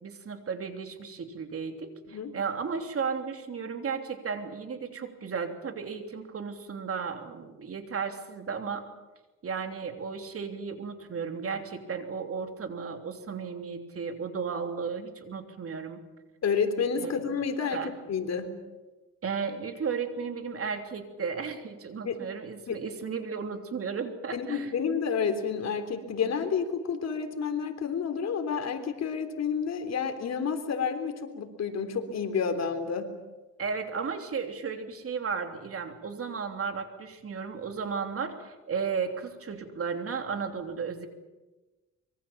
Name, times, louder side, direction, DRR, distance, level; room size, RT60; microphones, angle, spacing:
voice 1, 0.0-8.8 9.4-16.0 17.0-17.2 17.7-17.9 19.2-24.7 33.6-41.1, right 5 dB, 50° right, 6 dB, 3.3 m, -34 dB
voice 2, 16.4-17.8 18.1-18.5 22.0-22.2 22.7-22.8 24.3-33.1, left 6 dB, 60° left, 7 dB, 3.5 m, -30 dB
25.0 x 23.5 x 7.3 m, 1.1 s
cardioid pair, 90°, 30 cm